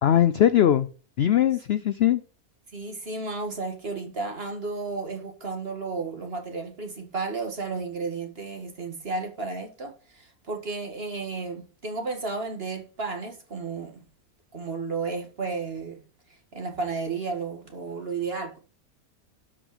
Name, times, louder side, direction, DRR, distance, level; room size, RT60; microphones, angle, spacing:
voice 1, 0.0-0.9 1.2-2.2, left 11 dB, 65° left, 0.6 m, -20 dB
voice 2, 2.7-14.0 14.5-16.0 16.5-18.6, right 4 dB, 40° right, 2.1 m, -33 dB
12.0 x 5.6 x 5.0 m
omnidirectional pair, 1.6 m